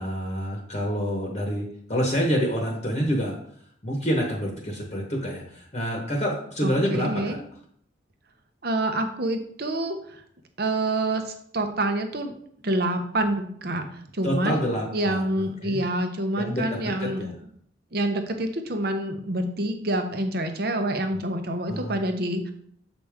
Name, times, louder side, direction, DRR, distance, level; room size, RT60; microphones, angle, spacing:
voice 1, 0.0-3.3 3.8-7.4 14.2-15.8 16.4-17.3 21.7-22.0, equal, 35° left, 0 dB, 1.1 m, -27 dB
voice 2, 6.6-7.4 8.6-10.2 10.6-12.3 12.6-14.6 14.9-17.3 17.9-22.5, right 1 dB, 50° right, 6 dB, 0.9 m, -27 dB
8.0 x 5.0 x 3.5 m, 0.64 s
head